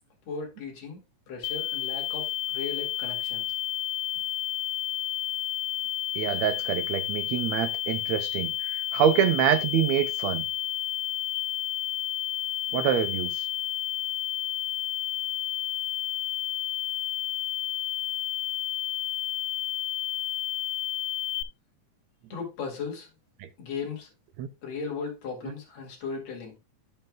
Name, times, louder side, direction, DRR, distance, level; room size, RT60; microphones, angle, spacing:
voice 1, 0.3-1.0 1.3-3.5 22.3-23.1 23.6-24.1 24.6-26.5, left 5 dB, 65° left, 3.3 m, -36 dB
sound 1, 1.4-21.4, left 14 dB, 90° left, 2.1 m, -31 dB
voice 2, 6.2-10.5 12.7-13.5 23.4-23.5 24.4-24.5, right 10 dB, 75° right, 1.9 m, -26 dB
14.5 x 5.6 x 2.2 m
omnidirectional pair, 3.3 m